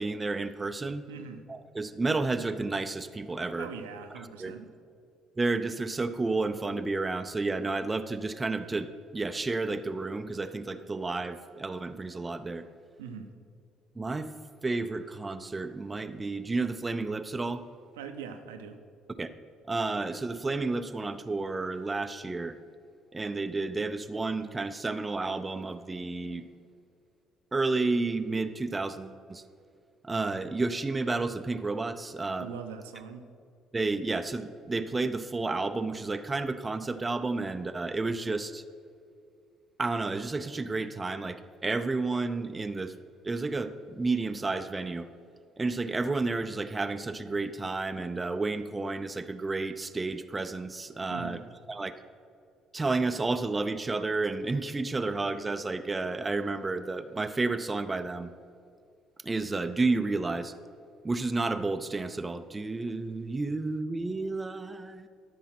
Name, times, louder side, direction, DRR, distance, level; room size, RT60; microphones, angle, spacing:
voice 1, 0.0-1.0 1.5-3.7 4.4-4.5 5.4-12.7 14.0-14.3 14.6-17.6 19.2-19.3 19.7-22.6 23.1-26.5 27.5-29.4 30.0-32.5 33.7-38.6 39.8-43.0 43.2-45.1 45.6-51.4 51.7-51.9 52.7-58.3 59.2-60.5 61.0-65.1, right 3 dB, 20° right, 9 dB, 0.5 m, -31 dB
voice 2, 1.1-1.4 3.6-4.7 13.0-13.3 18.0-18.8 32.4-33.3 51.1-51.4, right 6 dB, 75° right, 6 dB, 0.7 m, -41 dB
13.0 x 5.5 x 5.9 m, 2.4 s
figure-of-eight pair, 50°, 0 cm